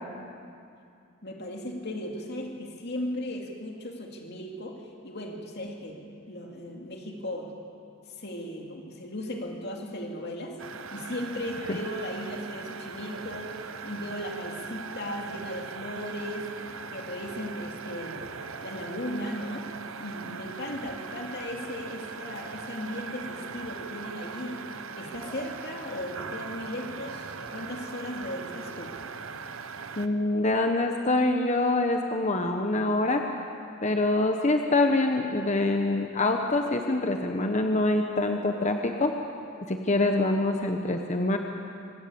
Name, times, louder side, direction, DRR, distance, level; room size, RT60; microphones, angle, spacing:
voice 1, 1.2-7.6 8.1-10.6 10.9-16.7 16.9-18.3 18.6-24.7 24.9-29.0, left 1 dB, 50° left, 1 dB, 2.4 m, -37 dB
sound 1, 10.6-30.1, right 5 dB, 65° right, 0.9 m, -40 dB
sound 2, 22.1-23.4 25.0-25.8, right 1 dB, 85° right, 6.4 m, -50 dB
voice 2, 30.0-33.3 33.8-39.1 39.6-41.4, left 2 dB, 30° left, 4 dB, 1.0 m, -25 dB
25.0 x 13.0 x 8.6 m, 2.5 s
head